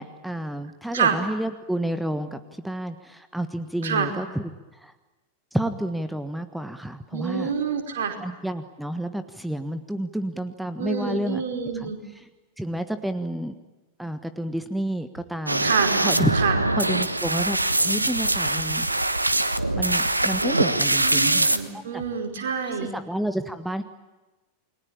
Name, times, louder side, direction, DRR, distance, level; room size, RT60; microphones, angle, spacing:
voice 1, 0.0-4.4 4.7-4.9 5.5-7.5 8.2-11.4 11.7-12.3 12.6-13.5 14.0-15.7 16.0-16.3 16.8-17.6 17.8-18.9 19.7-21.5 21.7-22.0 22.4-22.5 22.8-23.8, right 1 dB, 5° right, 11 dB, 1.5 m, -30 dB
voice 2, 7.1-8.1 10.8-12.0 15.6-15.9 16.3-16.5 21.0-22.9, right 6 dB, 60° right, 4 dB, 4.8 m, -27 dB
sound 1, 15.5-21.6, right 2 dB, 85° right, 1.3 m, -23 dB
29.5 x 22.0 x 8.9 m, 1.1 s
figure-of-eight pair, 90°, 0 cm